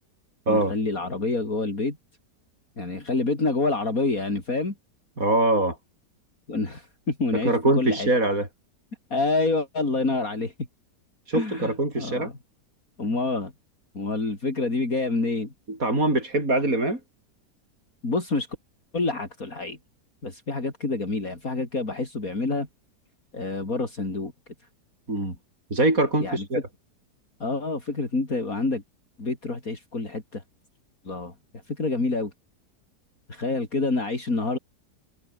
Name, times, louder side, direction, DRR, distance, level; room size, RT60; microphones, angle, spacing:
voice 1, 0.5-2.0 2.8-4.7 6.5-8.1 9.1-10.5 11.3-12.3 13.0-13.5 13.9-15.5 18.0-18.5 18.9-19.8 20.2-22.7 23.3-24.3 26.2-26.4 27.4-28.8 29.2-30.4 31.0-31.3 31.7-32.3 33.3-34.6, left 3 dB, 55° left, 4.8 m, -27 dB
voice 2, 5.2-5.8 7.3-8.5 11.3-12.3 15.7-17.0 25.1-25.4 25.7-26.6, right 2 dB, 50° right, 7.3 m, -23 dB
omnidirectional pair, 1.8 m